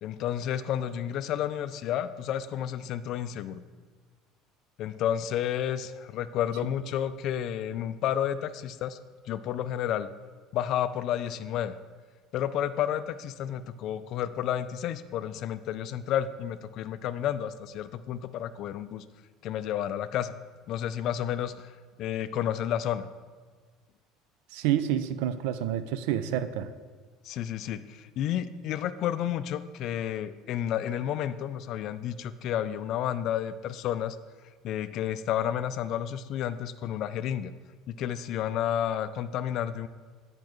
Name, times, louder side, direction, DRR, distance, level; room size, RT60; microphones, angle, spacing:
voice 1, 0.0-3.6 4.8-9.0 9.3-10.1 10.5-11.7 12.3-19.0 19.4-20.3 20.7-21.7 22.0-23.1 27.2-34.2 34.6-37.5 37.9-39.9, left 10 dB, 55° left, 13 dB, 0.3 m, -31 dB
voice 2, 24.5-26.7, right 10 dB, 80° right, 12 dB, 0.4 m, -28 dB
8.6 x 5.2 x 3.1 m, 1.5 s
supercardioid pair, 125°, 0 cm